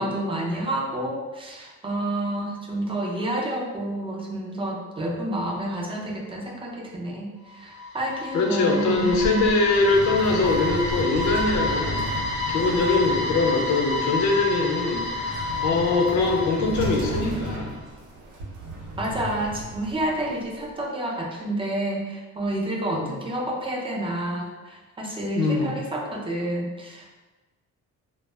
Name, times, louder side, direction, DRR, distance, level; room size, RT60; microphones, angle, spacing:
voice 1, 0.0-9.5 19.0-27.2, right 1 dB, 15° right, -2 dB, 0.5 m, -29 dB
sound 1, 7.5-17.6, left 2 dB, ahead, 0.9 m, -30 dB
voice 2, 8.3-12.1 12.5-17.7 22.9-23.1 25.3-25.7, left 3 dB, 70° left, 1 dB, 0.6 m, -23 dB
sound 2, 8.8-20.7, right 1 dB, 80° right, 0.7 m, -35 dB
2.0 x 2.0 x 3.2 m, 1.2 s
cardioid pair, 90°, 30 cm